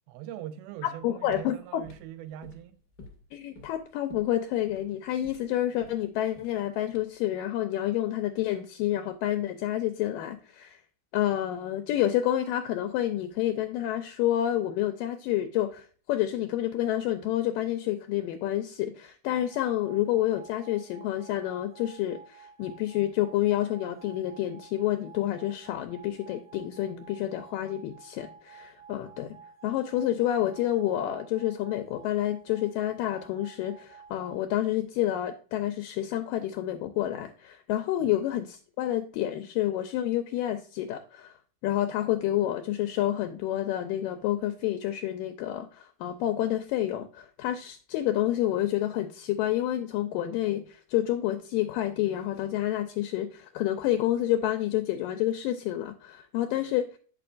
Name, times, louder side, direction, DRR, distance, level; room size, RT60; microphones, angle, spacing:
voice 1, 0.1-2.8 38.0-38.1, right 11 dB, 90° right, 2.5 m, -42 dB
voice 2, 0.8-1.9 3.3-10.8 11.1-29.4 29.6-41.4 41.6-57.0, left 13 dB, 80° left, 2.0 m, -29 dB
sound 1, 0.8-7.3, left 2 dB, 25° left, 1.5 m, -51 dB
sound 2, 19.3-34.4, right 6 dB, 70° right, 2.0 m, -52 dB
8.7 x 6.9 x 2.5 m
omnidirectional pair, 4.2 m